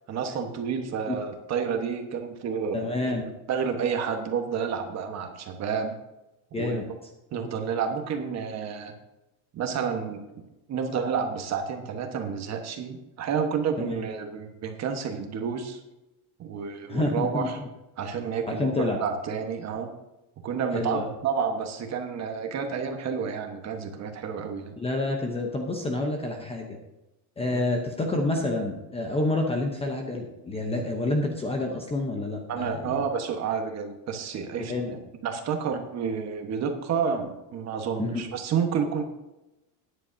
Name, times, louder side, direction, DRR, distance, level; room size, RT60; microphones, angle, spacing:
voice 1, 0.1-5.9 6.5-7.0 7.3-8.9 9.5-10.2 10.7-15.8 16.4-17.6 18.0-19.9 20.4-24.7 27.5-27.6 32.5-35.0 35.2-39.0, right 6 dB, 30° right, 5 dB, 1.3 m, -30 dB
voice 2, 2.7-3.3 6.5-6.9 13.8-14.0 16.9-17.5 18.5-19.0 20.7-21.1 24.8-26.8 27.4-33.0 34.7-35.0 38.0-38.1, left 2 dB, 10° left, 2 dB, 0.8 m, -28 dB
13.5 x 10.0 x 2.7 m, 0.97 s
cardioid pair, 160°, 49 cm